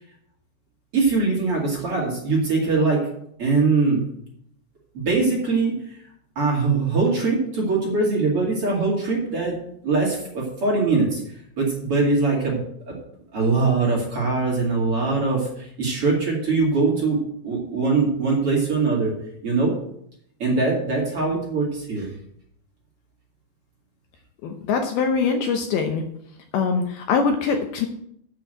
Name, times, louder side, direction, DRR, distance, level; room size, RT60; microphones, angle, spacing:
voice 1, 0.9-3.0 3.4-4.0 4.9-5.7 6.4-9.6 9.8-11.2 11.6-12.6 12.9-13.0 13.3-19.1 19.4-19.7 20.4-22.1, right 3 dB, 40° right, -3 dB, 2.8 m, -22 dB
voice 2, 24.4-26.0 26.5-27.9, left 5 dB, 75° left, 4 dB, 2.5 m, -23 dB
7.8 x 6.7 x 7.8 m, 0.70 s
omnidirectional pair, 5.0 m